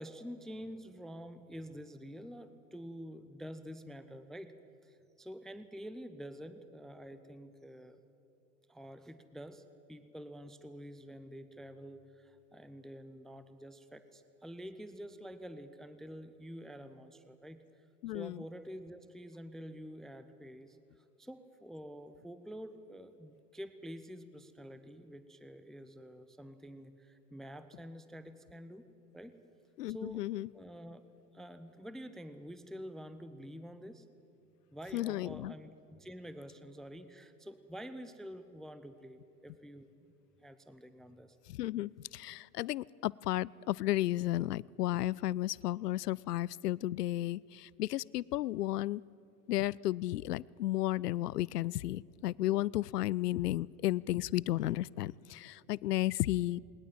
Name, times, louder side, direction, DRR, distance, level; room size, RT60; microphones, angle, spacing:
voice 1, 0.0-4.5 4.8-8.0 8.7-17.6 18.1-20.8 21.2-28.9 29.1-29.4 29.9-31.0 31.3-34.1 34.7-39.9 40.4-41.4, equal, ahead, 12 dB, 0.6 m, -48 dB
voice 2, 18.0-18.4 29.8-30.5 34.9-35.5 41.5-49.0 49.5-56.6, left 15 dB, 75° left, 24 dB, 0.5 m, -33 dB
20.0 x 19.5 x 8.9 m, 2.8 s
hypercardioid pair, 95°, 48 cm